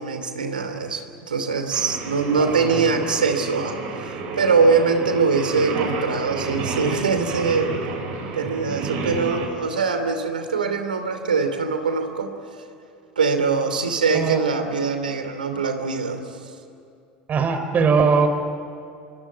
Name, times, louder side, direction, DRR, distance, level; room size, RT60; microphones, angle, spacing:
voice 1, 0.0-7.7 8.3-12.3 13.2-16.2, right 4 dB, 90° right, 7 dB, 2.8 m, -23 dB
Singing, 1.7-9.4, right 3 dB, 70° right, 6.7 m, -30 dB
voice 2, 2.4-2.9 14.1-14.4 17.3-18.3, right 5 dB, 35° right, 8 dB, 4.7 m, -20 dB
27.0 x 22.5 x 9.4 m, 2.5 s
hypercardioid pair, 75°, 5 cm